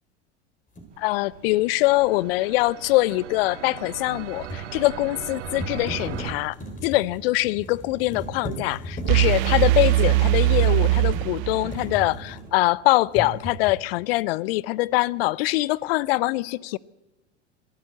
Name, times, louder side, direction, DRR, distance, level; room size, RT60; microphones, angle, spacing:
sound 1, 0.7-0.9 4.0-12.7 13.1-13.9, equal, 20° left, 5.0 m, -37 dB
sound 2, 0.9-6.3, right 10 dB, 75° right, 1.1 m, -39 dB
voice 1, 1.0-6.6 6.8-16.8, left 19 dB, 55° left, 0.6 m, -23 dB
sound 3, 9.1-12.0, right 18 dB, 45° right, 0.7 m, -20 dB
25.0 x 12.5 x 8.4 m
figure-of-eight pair, 85°, 36 cm